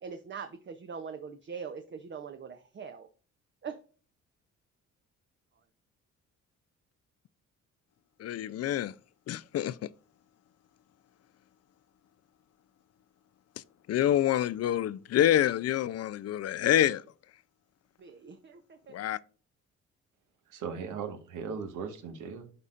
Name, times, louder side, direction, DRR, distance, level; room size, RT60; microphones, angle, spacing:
voice 1, 0.0-3.1 3.6-3.8 18.0-19.0, right 6 dB, 40° right, 0.8 m, -42 dB
voice 2, 8.2-8.9 9.3-9.9 13.9-17.0 18.9-19.2, left 11 dB, 55° left, 0.5 m, -27 dB
voice 3, 20.5-22.5, right 6 dB, 80° right, 1.6 m, -38 dB
12.0 x 4.1 x 2.5 m
cardioid pair, 90°, 30 cm